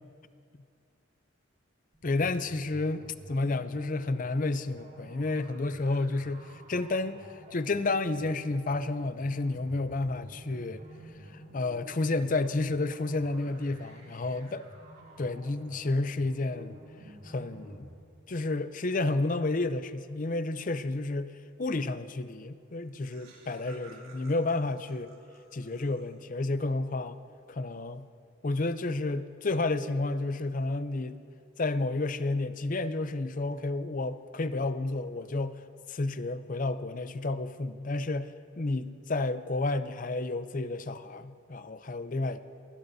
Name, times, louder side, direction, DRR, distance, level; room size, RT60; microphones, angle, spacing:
sound 1, 1.9-17.9, right 1 dB, 50° right, 2.7 m, -50 dB
voice 1, 2.0-10.8 11.3-14.7 15.2-16.8 17.2-17.9 18.3-25.1 25.5-27.2 27.5-28.1 28.4-31.2 31.6-35.6 35.9-42.4, left 2 dB, 40° left, 12 dB, 0.5 m, -31 dB
Laughter, 22.4-22.5 22.7-26.4, right 3 dB, 90° right, 4.1 m, -55 dB
23.5 x 20.0 x 2.7 m, 2.3 s
head